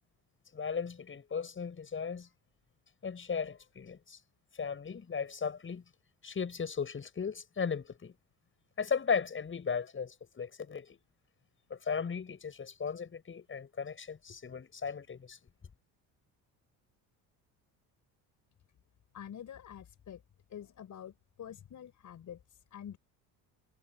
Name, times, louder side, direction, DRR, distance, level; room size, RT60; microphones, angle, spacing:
voice 1, 0.5-2.3 3.0-4.2 4.5-5.8 6.2-8.1 8.8-11.0 11.7-15.4, left 6 dB, 30° left, 7.9 m, -36 dB
voice 2, 19.1-20.2 20.5-23.0, left 9 dB, 50° left, 6.0 m, -47 dB
supercardioid pair, 95°, 38 cm